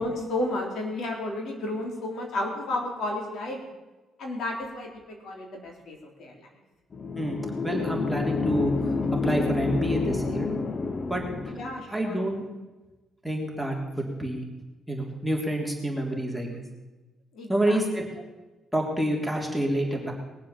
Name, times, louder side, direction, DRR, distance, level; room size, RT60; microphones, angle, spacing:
voice 1, 0.0-3.6 4.2-6.3 11.5-12.2 17.3-17.8, left 2 dB, 65° left, 1 dB, 3.7 m, -32 dB
sound 1, 6.9-11.9, left 4 dB, 40° left, 0.9 m, -29 dB
voice 2, 7.1-8.7 9.2-10.5 11.1-11.5 11.9-12.5 13.2-14.4 14.9-16.6 17.5-18.2 18.7-20.1, right 1 dB, 5° left, 1 dB, 3.2 m, -28 dB
21.0 x 7.5 x 7.1 m, 1.2 s
cardioid pair, 90°, 0 cm